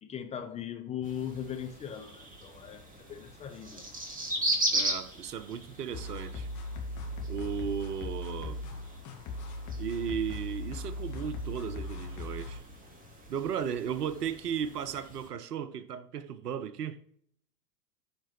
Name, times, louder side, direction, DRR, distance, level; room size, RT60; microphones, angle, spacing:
voice 1, 0.0-3.9, left 9 dB, 15° left, 0.5 m, -39 dB
sound 1, 1.0-15.3, right 1 dB, 15° right, 2.2 m, -38 dB
voice 2, 4.7-6.5 7.3-8.6 9.8-12.6 13.3-17.0, right 8 dB, 70° right, 0.8 m, -35 dB
sound 2, 5.9-12.6, left 1 dB, 35° left, 2.0 m, -38 dB
14.5 x 5.1 x 3.1 m
figure-of-eight pair, 85°, 48 cm